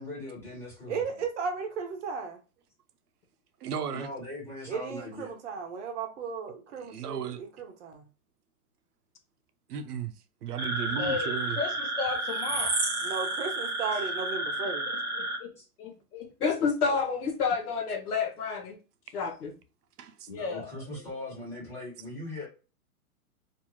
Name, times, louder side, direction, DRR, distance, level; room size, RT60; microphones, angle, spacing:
voice 1, 0.0-1.2 3.9-5.3 10.9-11.1 15.6-15.7 20.3-22.5, left 1 dB, 5° left, 1.2 m, -40 dB
voice 2, 0.9-2.4 4.7-8.0 13.0-14.9, right 5 dB, 50° right, 0.8 m, -35 dB
voice 3, 3.6-4.1 6.8-7.4 9.7-10.1 10.4-11.6 20.0-20.3, right 8 dB, 90° right, 0.7 m, -35 dB
sound 1, 10.6-15.4, right 1 dB, 10° right, 0.5 m, -31 dB
voice 4, 11.0-12.8 14.7-14.8 15.2-16.3 20.3-21.1, left 4 dB, 40° left, 1.0 m, -36 dB
voice 5, 16.4-18.8 19.1-19.5, left 5 dB, 80° left, 1.2 m, -28 dB
2.6 x 2.4 x 3.0 m
hypercardioid pair, 150°, 45 cm